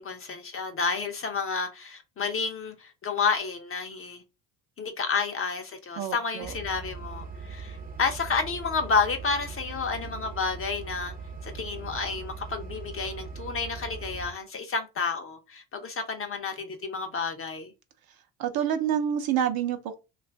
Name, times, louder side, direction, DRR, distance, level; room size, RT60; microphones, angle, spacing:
voice 1, 0.0-4.2 4.8-11.1 11.4-17.7, left 5 dB, 30° left, 0.6 m, -30 dB
voice 2, 6.0-6.5 18.4-20.0, right 9 dB, 55° right, 0.7 m, -27 dB
sound 1, 6.4-14.3, right 5 dB, 20° right, 0.6 m, -40 dB
2.5 x 2.4 x 3.3 m
cardioid pair, 95°, 44 cm